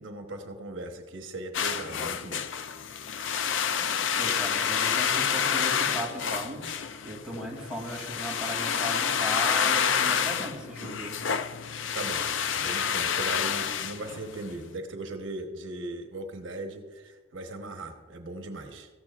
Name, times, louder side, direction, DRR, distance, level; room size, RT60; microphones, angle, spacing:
voice 1, 0.0-2.4 11.9-12.2 12.5-18.9, right 2 dB, 70° right, 4 dB, 1.1 m, -38 dB
sound 1, 1.5-14.6, left 7 dB, 65° left, 0.5 m, -28 dB
voice 2, 3.7-6.6 7.0-11.1, equal, 5° right, -3 dB, 2.9 m, -37 dB
17.5 x 14.5 x 2.5 m, 1.4 s
head